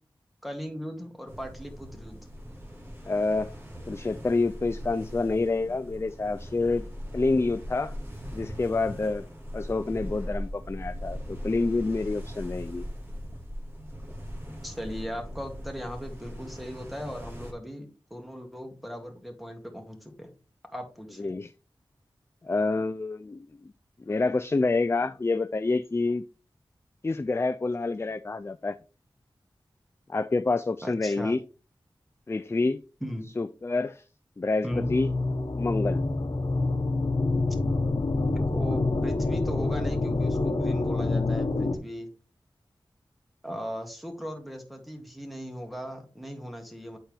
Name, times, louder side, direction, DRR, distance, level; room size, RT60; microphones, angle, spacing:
voice 1, 0.4-2.2 14.6-20.3 20.7-21.3 30.8-31.4 33.0-33.3 34.6-34.9 38.3-42.1 43.4-47.0, equal, ahead, 1.9 m, -38 dB
sound 1, 1.3-17.5, equal, 25° right, 2.1 m, -40 dB
voice 2, 3.0-3.5 3.9-6.9 7.1-8.0 8.3-9.3 9.5-12.9 21.2-21.5 22.4-23.5 24.1-26.2 27.0-28.8 30.1-31.4 32.3-32.8 33.4-34.0 34.4-35.1 35.5-36.0, left 3 dB, 30° left, 0.4 m, -27 dB
sound 2, 34.7-41.8, left 2 dB, 60° left, 1.1 m, -27 dB
9.0 x 4.4 x 3.4 m
wide cardioid pair, 50°, 9 cm